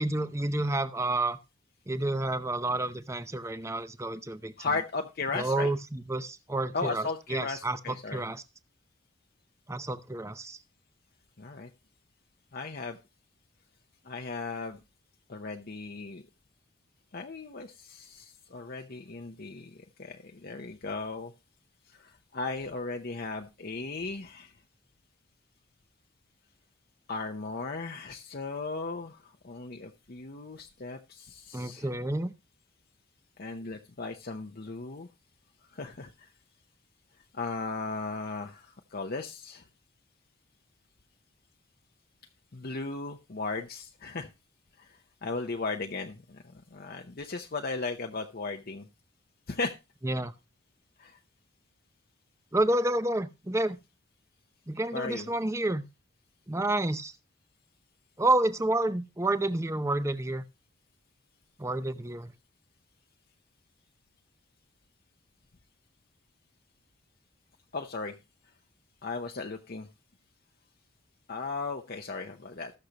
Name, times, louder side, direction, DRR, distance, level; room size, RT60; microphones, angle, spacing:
voice 1, 0.0-1.4 1.9-4.5 5.3-8.4 9.7-10.6 31.5-32.3 50.0-50.3 52.5-53.8 54.7-55.8 56.5-57.1 58.2-60.4 61.6-62.3, right 2 dB, 15° right, 12 dB, 0.6 m, -29 dB
voice 2, 4.6-5.7 6.7-8.2 11.4-11.7 12.5-13.0 14.0-14.8 15.3-16.2 17.1-21.3 21.9-24.5 27.1-31.9 33.4-35.1 35.7-36.3 37.3-39.6 42.5-44.3 44.8-46.4 46.7-48.9 49.5-49.7 51.0-51.2 54.9-55.3 67.7-68.2 69.0-69.9 71.3-72.7, left 3 dB, 45° left, 4 dB, 0.8 m, -36 dB
19.5 x 6.6 x 2.9 m, 0.26 s
head